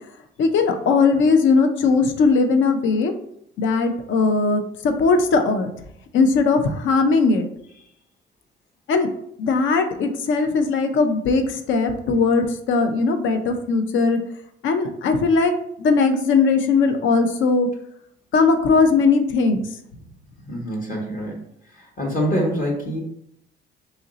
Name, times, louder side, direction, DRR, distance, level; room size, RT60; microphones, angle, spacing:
voice 1, 0.4-3.1 3.6-5.7 6.1-7.5 8.9-9.1 9.4-14.2 14.6-15.5 15.8-17.7 18.3-19.6, left 4 dB, 75° left, 7 dB, 0.5 m, -19 dB
voice 2, 20.5-21.4 21.7-23.0, equal, 45° left, -3 dB, 1.0 m, -25 dB
3.0 x 2.5 x 3.9 m, 0.72 s
cardioid pair, 90°, 20 cm